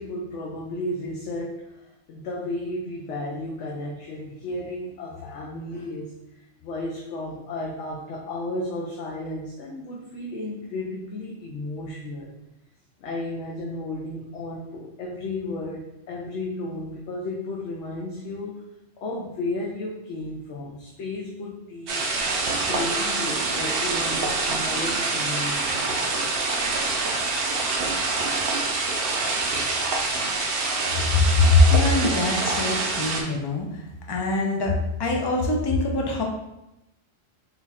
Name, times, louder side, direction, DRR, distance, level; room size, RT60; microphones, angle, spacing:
voice 1, 0.0-12.4 13.0-18.6 19.0-22.1 22.6-26.5, left 2 dB, 70° left, -3 dB, 0.9 m, -33 dB
sound 1, 21.9-33.2, right 3 dB, 60° right, 0.8 m, -26 dB
voice 2, 31.1-33.7 34.1-36.2, left 2 dB, 35° left, 0 dB, 0.4 m, -22 dB
3.9 x 2.4 x 4.1 m, 0.89 s
omnidirectional pair, 1.3 m